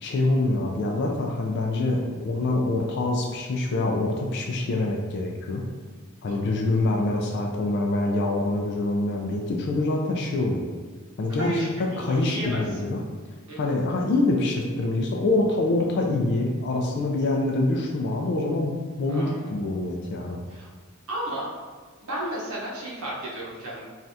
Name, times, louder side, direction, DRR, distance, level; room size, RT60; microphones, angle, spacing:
voice 1, 0.0-5.7 6.2-10.6 11.2-11.5 12.0-13.0 13.6-20.4, left 2 dB, 55° left, 0 dB, 0.3 m, -25 dB
voice 2, 11.4-12.9 13.5-13.6 19.1-19.5 20.5-20.7 21.1-21.5 22.0-23.8, right 1 dB, 85° right, -6 dB, 0.9 m, -32 dB
3.2 x 2.4 x 2.6 m, 1.5 s
head